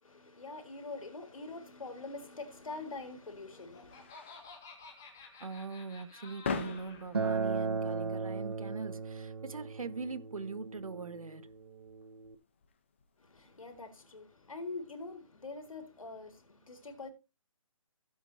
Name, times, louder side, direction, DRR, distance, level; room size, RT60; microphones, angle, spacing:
voice 1, 0.0-4.1 13.2-17.1, left 3 dB, 80° left, 3.5 m, -44 dB
sound 1, 2.6-13.8, left 5 dB, 20° left, 1.1 m, -46 dB
Laughter, 3.3-7.1, left 4 dB, 5° left, 0.5 m, -52 dB
voice 2, 5.4-11.5, right 4 dB, 90° right, 1.8 m, -41 dB
Acoustic guitar, 7.1-12.3, right 5 dB, 50° right, 1.1 m, -37 dB
16.0 x 8.1 x 2.9 m
hypercardioid pair, 180°, 17 cm